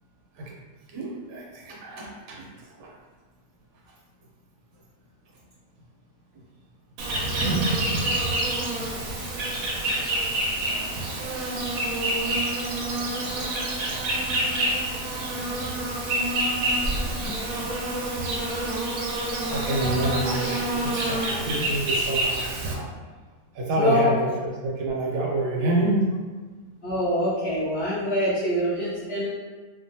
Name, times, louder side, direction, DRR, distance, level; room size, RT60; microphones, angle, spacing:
voice 1, 0.9-2.9 13.4-13.5 16.9-17.6 18.3-18.5 19.0-19.1 19.5-22.9 23.5-26.1, right 2 dB, 80° right, -2 dB, 1.3 m, -28 dB
Insect, 7.0-22.7, right 1 dB, 65° right, 0.9 m, -27 dB
voice 2, 23.8-24.1 26.8-29.3, left 1 dB, 55° left, -10 dB, 0.7 m, -24 dB
3.0 x 2.4 x 2.6 m, 1.3 s
omnidirectional pair, 1.8 m